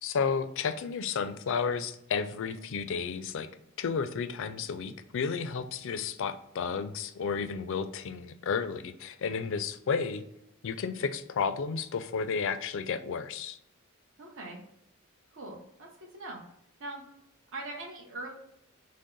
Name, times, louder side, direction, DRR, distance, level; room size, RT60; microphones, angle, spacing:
voice 1, 0.0-3.5 3.8-10.2 10.6-13.6, left 5 dB, 60° left, 12 dB, 0.4 m, -32 dB
voice 2, 14.2-14.6 15.3-16.4 16.8-17.0 17.5-18.3, right 2 dB, 65° right, -1 dB, 0.9 m, -41 dB
6.4 x 2.1 x 3.8 m, 0.80 s
head